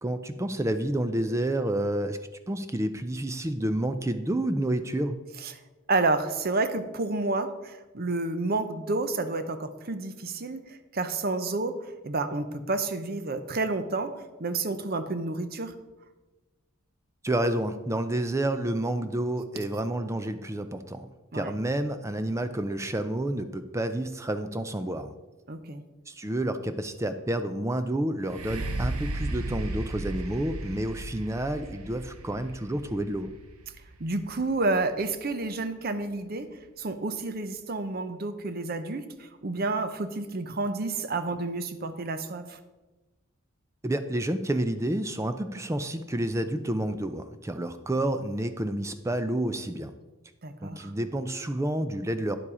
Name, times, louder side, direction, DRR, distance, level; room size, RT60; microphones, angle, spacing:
voice 1, 0.0-2.2 2.5-5.2 17.2-21.1 21.3-25.1 26.1-33.3 43.8-49.9 50.6-52.4, right 1 dB, 15° right, 10 dB, 0.4 m, -29 dB
voice 2, 5.9-11.8 12.0-14.1 14.4-15.7 21.3-21.5 25.5-25.8 34.0-39.1 39.4-42.6 50.4-50.9, right 3 dB, 45° right, 10 dB, 0.7 m, -30 dB
sound 1, 28.2-36.0 36.6-36.7, right 2 dB, 80° right, 1.0 m, -36 dB
9.7 x 7.4 x 4.9 m, 1.2 s
head